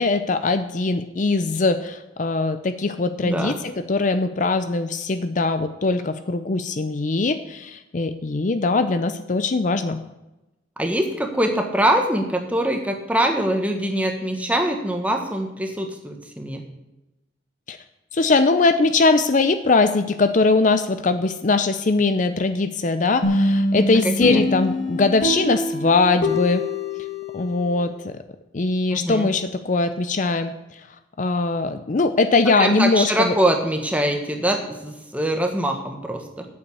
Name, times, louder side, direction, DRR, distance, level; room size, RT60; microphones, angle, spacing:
voice 1, 0.0-10.0 17.7-17.8 18.1-26.7 27.3-28.2 28.5-30.5 31.2-33.3, left 3 dB, 45° left, 10 dB, 0.5 m, -21 dB
voice 2, 3.2-3.6 10.8-16.6 24.0-24.4 28.9-29.3 32.6-36.5, right 1 dB, 10° right, 4 dB, 1.3 m, -23 dB
sound 1, 23.2-27.9, left 1 dB, 75° left, 2.1 m, -24 dB
8.5 x 7.0 x 8.4 m, 0.98 s
head